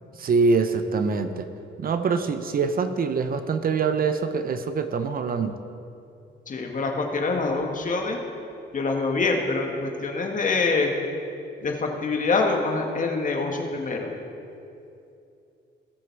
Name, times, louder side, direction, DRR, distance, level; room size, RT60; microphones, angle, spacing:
voice 1, 0.2-1.5 1.8-5.5, right 4 dB, 45° right, 8 dB, 0.7 m, -24 dB
voice 2, 6.5-8.2 8.7-10.9 11.6-14.1, left 3 dB, 40° left, 2 dB, 1.7 m, -25 dB
19.5 x 6.5 x 4.6 m, 2.7 s
cardioid pair, 90°, 20 cm